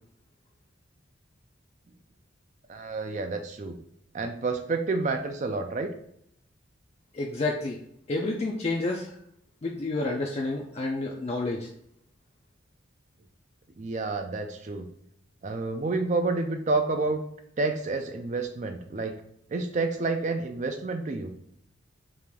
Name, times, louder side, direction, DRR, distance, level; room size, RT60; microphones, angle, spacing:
voice 1, 2.7-3.8 4.1-5.9 13.8-14.9 15.4-17.2 17.6-19.2 19.5-21.3, right 3 dB, 35° right, 6 dB, 0.4 m, -29 dB
voice 2, 7.1-7.8 8.1-9.2 9.6-11.7, left 2 dB, 30° left, -1 dB, 0.4 m, -29 dB
4.8 x 2.5 x 3.5 m, 0.72 s
head